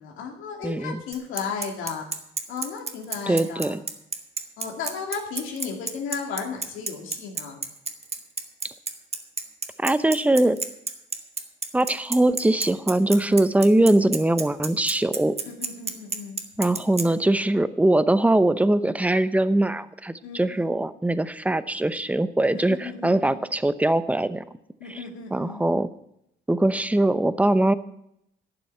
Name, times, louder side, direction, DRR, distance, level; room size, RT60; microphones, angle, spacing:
voice 1, 0.0-2.1 2.5-3.8 4.6-7.6 15.5-16.4 20.2-20.8 22.5-23.4 24.8-25.6, left 6 dB, 85° left, 1 dB, 2.4 m, -34 dB
voice 2, 0.6-1.0 3.3-3.8 9.8-10.6 11.7-15.3 16.6-24.4 24.9-25.0 25.3-25.9 26.5-27.7, right 1 dB, 5° right, 14 dB, 0.7 m, -21 dB
Bicycle, 1.1-17.1, right 4 dB, 30° right, 1.4 m, -30 dB
11.5 x 6.9 x 8.9 m, 0.77 s
cardioid pair, 90°, 20 cm